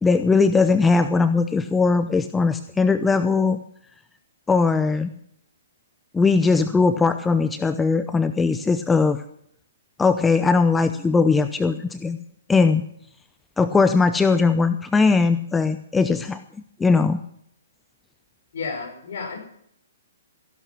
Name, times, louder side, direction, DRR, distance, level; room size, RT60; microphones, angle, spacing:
voice 1, 0.0-3.6 4.5-5.1 6.1-9.2 10.0-12.2 12.5-12.8 13.6-16.4 16.8-17.2, left 4 dB, 10° left, 10 dB, 0.7 m, -19 dB
voice 2, 18.5-19.4, left 4 dB, 55° left, 3 dB, 5.5 m, -31 dB
15.5 x 11.5 x 5.9 m, 0.69 s
figure-of-eight pair, 125°, 0 cm